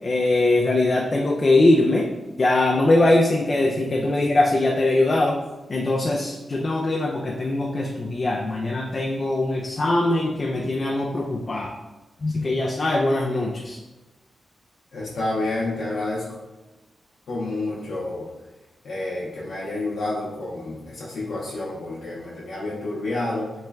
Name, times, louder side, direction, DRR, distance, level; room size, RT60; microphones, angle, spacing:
voice 1, 0.0-2.1 2.4-5.4 5.7-11.7 12.2-13.8, left 2 dB, 40° left, -1 dB, 0.3 m, -21 dB
voice 2, 14.9-16.3 17.3-18.3 18.8-23.5, left 2 dB, 80° left, -7 dB, 0.6 m, -29 dB
3.1 x 2.1 x 3.3 m, 1.1 s
wide cardioid pair, 95°, 0 cm